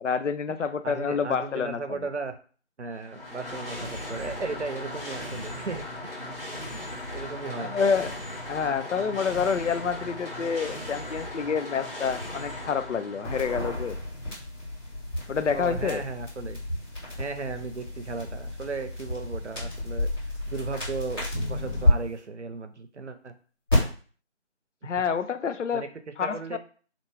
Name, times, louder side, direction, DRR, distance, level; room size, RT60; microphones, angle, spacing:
voice 1, 0.0-2.0 7.6-8.1 8.5-14.0 15.3-16.0 24.8-25.9 26.2-26.6, left 6 dB, 85° left, 12 dB, 0.5 m, -28 dB
voice 2, 0.8-2.4 2.8-5.8 6.7-6.8 7.1-7.7 15.5-16.6 17.2-23.3 25.7-26.6, right 4 dB, 75° right, 8 dB, 0.6 m, -36 dB
sound 1, 2.9-13.8, left 1 dB, 50° left, 1.7 m, -37 dB
sound 2, 13.2-21.9 23.7-23.8, left 1 dB, 20° left, 1.8 m, -31 dB
3.4 x 2.5 x 3.2 m, 0.42 s
figure-of-eight pair, 170°, 35 cm